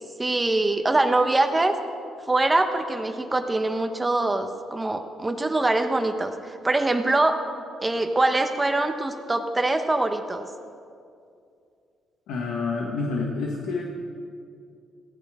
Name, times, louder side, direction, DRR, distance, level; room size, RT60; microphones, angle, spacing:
voice 1, 0.2-1.7 2.3-7.4 7.8-10.5, right 2 dB, 20° right, 6 dB, 1.3 m, -23 dB
voice 2, 12.3-13.8, left 4 dB, 90° left, -1 dB, 1.6 m, -28 dB
21.0 x 16.0 x 3.8 m, 2.4 s
cardioid pair, 90°, 0 cm